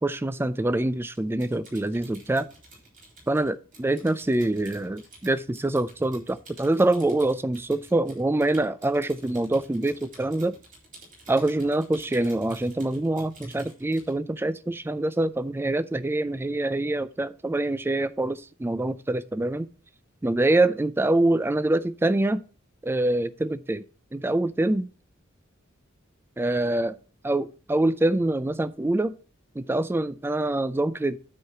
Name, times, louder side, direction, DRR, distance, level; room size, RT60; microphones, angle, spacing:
voice 1, 0.0-2.5 3.3-10.5 11.3-19.7 20.2-22.4 22.8-23.8 24.1-24.9 26.4-26.9 27.2-29.1 29.6-31.2, right 2 dB, 10° right, 0.3 m, -25 dB
Typing, 1.1-14.1, right 2 dB, 40° right, 3.8 m, -51 dB
9.5 x 4.8 x 5.8 m
head